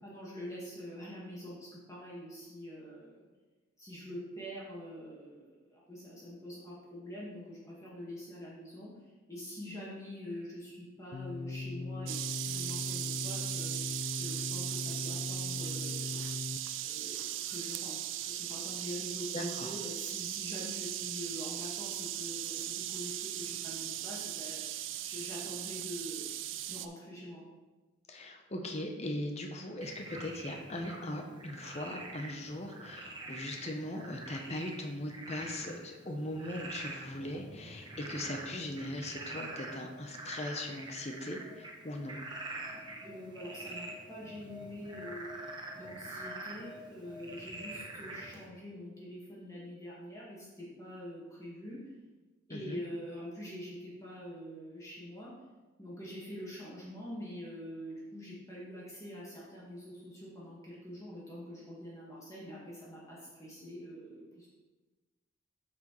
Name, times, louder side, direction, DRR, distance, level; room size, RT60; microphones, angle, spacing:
voice 1, 0.0-3.2 3.8-8.9 9.3-16.2 16.8-26.3 26.7-27.5 43.0-45.3 45.7-51.8 52.5-55.3 55.8-64.5, equal, 15° left, -6 dB, 1.6 m, -45 dB
sound 1, 11.1-16.6, left 3 dB, 50° left, 0.3 m, -39 dB
sound 2, 12.1-26.9, right 12 dB, 65° right, 0.4 m, -38 dB
voice 2, 19.3-19.8 28.1-42.2 52.5-52.8, left 1 dB, 30° left, 3 dB, 0.7 m, -39 dB
Frog, 29.8-48.5, right 2 dB, 20° right, 0.9 m, -45 dB
8.4 x 6.1 x 3.1 m, 1.2 s
head